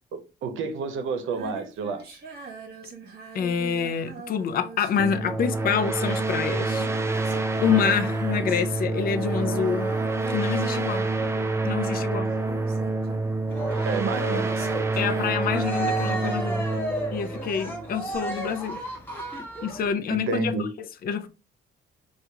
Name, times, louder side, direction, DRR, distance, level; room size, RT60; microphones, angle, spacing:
voice 1, 0.1-2.0 13.8-14.5 20.1-20.7, right 4 dB, 80° right, 0.7 m, -29 dB
Female singing, 1.2-16.6 18.1-18.2, right 2 dB, 50° right, 1.2 m, -41 dB
voice 2, 3.3-10.0 10.3-11.1 11.6-12.4 15.0-16.7 17.1-18.8 19.6-21.3, left 7 dB, 50° left, 0.4 m, -27 dB
sound 1, 5.0-18.3, right 3 dB, 15° right, 0.5 m, -27 dB
Cheering, 13.5-19.9, right 1 dB, 10° left, 1.3 m, -33 dB
2.9 x 2.4 x 3.4 m
cardioid pair, 90°, 20 cm